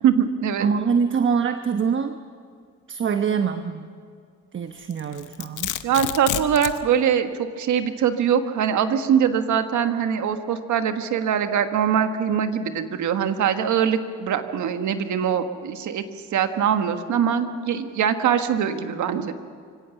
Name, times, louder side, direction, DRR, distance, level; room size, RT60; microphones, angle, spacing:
voice 1, 0.0-0.7 5.8-16.0 16.3-19.5, right 8 dB, 75° right, 8 dB, 1.5 m, -22 dB
voice 2, 0.6-2.2 2.9-3.9 4.5-5.7, right 6 dB, 40° right, 8 dB, 1.0 m, -24 dB
Domestic sounds home sounds, 4.9-6.8, left 14 dB, 90° left, 0.9 m, -29 dB
24.0 x 17.0 x 7.1 m, 2.2 s
cardioid pair, 90°, 30 cm